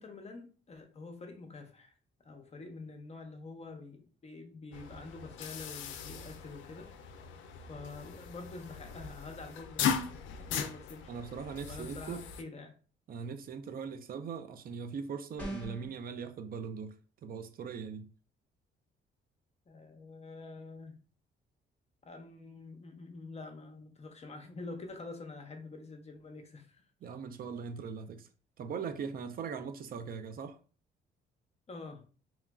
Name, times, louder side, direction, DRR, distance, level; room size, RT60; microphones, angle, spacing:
voice 1, 0.0-1.9 2.2-7.2 7.7-11.1 11.7-12.8 19.7-21.0 22.0-26.9 31.7-32.0, left 3 dB, 35° left, 0.6 m, -47 dB
sound 1, 4.7-12.4, left 7 dB, 75° left, 0.4 m, -39 dB
voice 2, 11.1-12.2 13.1-16.9 17.2-18.1 27.0-28.3 28.6-30.6, right 6 dB, 50° right, 0.4 m, -40 dB
sound 2, 15.4-15.9, right 1 dB, 5° left, 1.0 m, -40 dB
2.9 x 2.4 x 2.3 m
cardioid pair, 90°, 20 cm